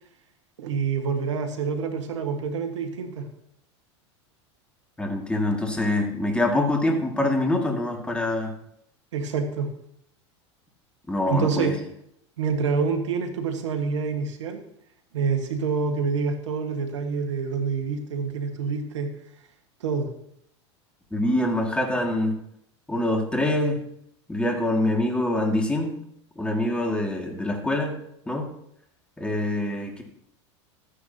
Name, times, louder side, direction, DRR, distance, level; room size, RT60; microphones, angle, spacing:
voice 1, 0.6-3.3 9.1-9.7 11.3-11.8 12.4-14.6 15.1-19.1 19.8-20.1, right 5 dB, 85° right, 6 dB, 1.6 m, -27 dB
voice 2, 5.0-8.5 11.1-11.7 21.1-22.3 22.9-23.8 24.3-26.0 26.4-28.0 28.3-28.5 29.2-30.0, left 1 dB, 5° left, 2 dB, 2.0 m, -25 dB
13.0 x 9.8 x 2.9 m, 0.72 s
hypercardioid pair, 105°, 15 cm